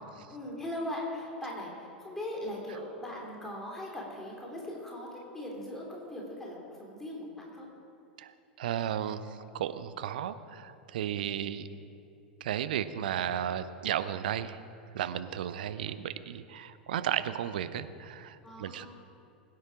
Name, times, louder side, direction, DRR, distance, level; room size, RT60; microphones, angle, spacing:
voice 1, 0.0-7.7 11.2-11.3 18.4-18.9, left 1 dB, 5° left, -3 dB, 3.5 m, -40 dB
voice 2, 8.2-11.7 12.4-14.6 14.9-18.9, right 10 dB, 60° right, 12 dB, 0.7 m, -34 dB
21.0 x 9.6 x 5.0 m, 2.6 s
figure-of-eight pair, 90°, 6 cm